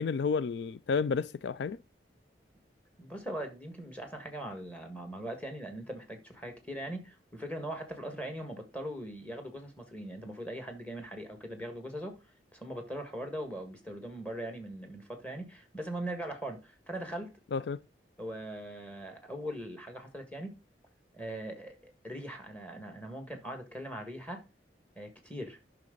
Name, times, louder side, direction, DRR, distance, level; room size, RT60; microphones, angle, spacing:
voice 1, 0.0-1.8 17.5-17.8, left 5 dB, 75° left, 0.4 m, -31 dB
voice 2, 3.0-12.2 12.5-17.3 18.2-20.5 21.1-24.4 25.0-25.6, right 1 dB, 10° left, 1.8 m, -40 dB
10.5 x 6.1 x 3.9 m
head